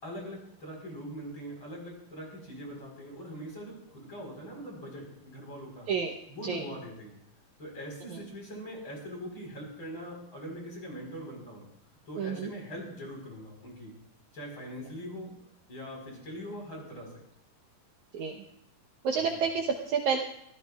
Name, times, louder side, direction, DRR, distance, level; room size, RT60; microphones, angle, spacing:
voice 1, 0.0-5.9 6.3-7.2 7.6-11.7 12.1-13.9 14.3-15.3 15.7-17.2 19.3-19.4, equal, 30° left, 0 dB, 5.0 m, -42 dB
voice 2, 12.2-12.5 18.1-18.4 19.0-20.2, right 6 dB, 65° right, 2 dB, 2.0 m, -29 dB
24.5 x 15.0 x 2.4 m, 0.74 s
omnidirectional pair, 4.2 m